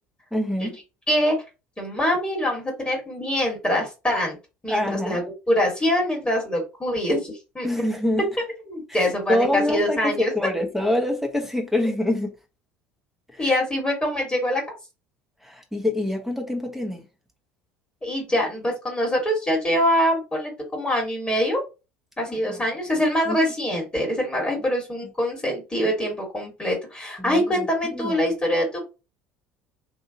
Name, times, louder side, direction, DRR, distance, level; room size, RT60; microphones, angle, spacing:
voice 1, 0.3-0.8 4.7-5.2 7.6-8.3 8.9-12.3 13.3-13.6 15.4-17.0 22.3-22.6 23.3-23.4 27.2-28.2, left 1 dB, 5° right, 1.0 m, -26 dB
voice 2, 1.8-4.4 4.6-5.2 5.5-7.7 8.7-10.3 13.4-14.6 18.0-21.6 22.2-28.8, equal, 15° left, 1.5 m, -24 dB
2.7 x 2.6 x 2.8 m
figure-of-eight pair, 65°, 7 cm